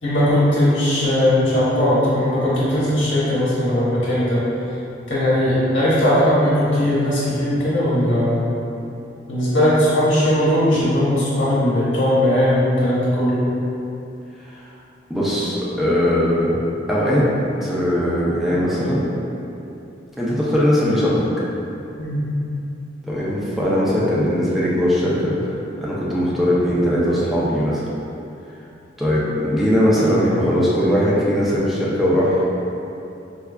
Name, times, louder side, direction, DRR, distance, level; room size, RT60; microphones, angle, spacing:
voice 1, 0.0-4.4 5.1-8.5 9.3-13.5 22.0-22.2, left 1 dB, 85° left, -9 dB, 1.2 m, -18 dB
voice 2, 15.1-16.5 16.9-17.3 17.6-19.1 20.1-21.2 23.0-25.5 25.8-27.8 29.0-32.5, equal, ahead, -8 dB, 0.4 m, -19 dB
4.5 x 2.3 x 2.2 m, 2.8 s
head